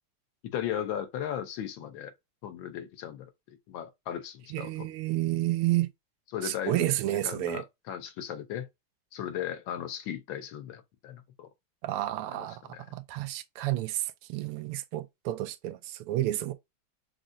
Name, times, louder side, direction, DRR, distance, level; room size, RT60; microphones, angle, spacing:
voice 1, 0.4-2.1 2.4-4.9 6.3-8.7 9.1-11.5 12.3-12.8, left 10 dB, 70° left, 1.4 m, -37 dB
voice 2, 4.5-5.9 6.4-7.6 11.8-12.6 12.9-16.5, right 15 dB, 85° right, 1.5 m, -30 dB
6.1 x 2.0 x 2.6 m
omnidirectional pair, 2.4 m